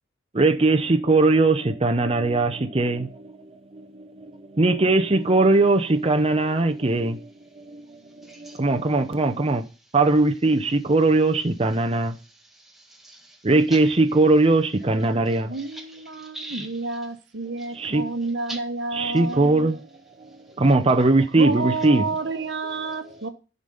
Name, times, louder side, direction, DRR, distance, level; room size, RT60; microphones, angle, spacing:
voice 1, 0.3-7.3 7.6-9.6 9.9-12.2 13.4-15.6 17.7-18.1 19.0-19.9 20.2-20.3 20.6-23.2, right 2 dB, 30° right, 0.8 m, -21 dB
voice 2, 8.2-8.7 12.0-14.0 15.3-17.1 17.6-17.9 18.2-18.7 19.3-19.4 20.5-20.6 22.9-23.0, right 2 dB, ahead, 1.8 m, -43 dB
voice 3, 15.5-19.7 21.4-23.3, right 3 dB, 65° right, 1.2 m, -30 dB
11.0 x 5.2 x 5.5 m
head